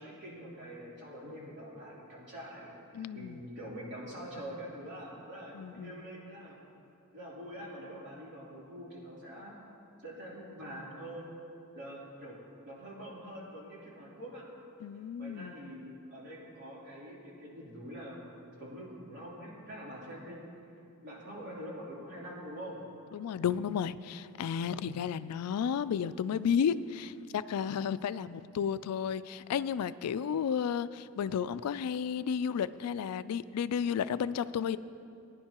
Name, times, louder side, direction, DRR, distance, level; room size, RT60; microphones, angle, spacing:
voice 1, 0.0-6.6 7.1-9.5 10.0-11.3 11.7-12.4 12.6-14.5 15.2-18.2 18.6-20.5 21.0-22.8 24.6-25.0, equal, 55° right, -6 dB, 3.3 m, -45 dB
voice 2, 2.9-3.4 5.5-5.9 14.8-15.5 23.1-34.8, left 7 dB, 90° left, 15 dB, 0.3 m, -32 dB
19.5 x 10.5 x 2.9 m, 2.6 s
head